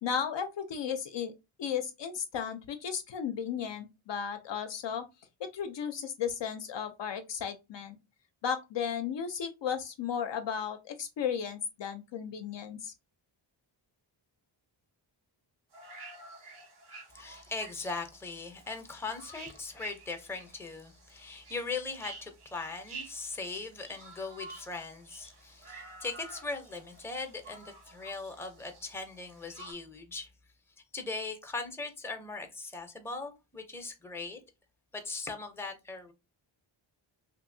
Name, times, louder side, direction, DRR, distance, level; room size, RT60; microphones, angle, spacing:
voice 1, 0.0-1.3 1.6-5.1 5.4-8.0 8.4-12.9, left 7 dB, 60° left, 0.5 m, -34 dB
sound 1, 15.7-29.7, right 3 dB, 75° right, 1.4 m, -50 dB
voice 2, 17.1-30.3 30.9-34.4 34.9-36.1, left 3 dB, 5° left, 0.6 m, -39 dB
2.7 x 2.6 x 2.6 m
wide cardioid pair, 85°, 50 cm